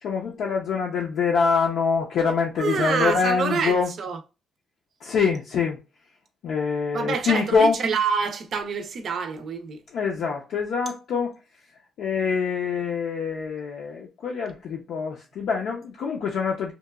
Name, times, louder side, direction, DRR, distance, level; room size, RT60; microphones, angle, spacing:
voice 1, 0.0-3.9 5.0-5.8 6.4-7.8 9.9-11.3 12.0-16.7, left 5 dB, 75° left, 0.5 m, -25 dB
voice 2, 2.6-4.2 6.9-9.8, right 5 dB, 60° right, 0.5 m, -26 dB
2.9 x 2.2 x 2.2 m
cardioid pair, 90°, 0 cm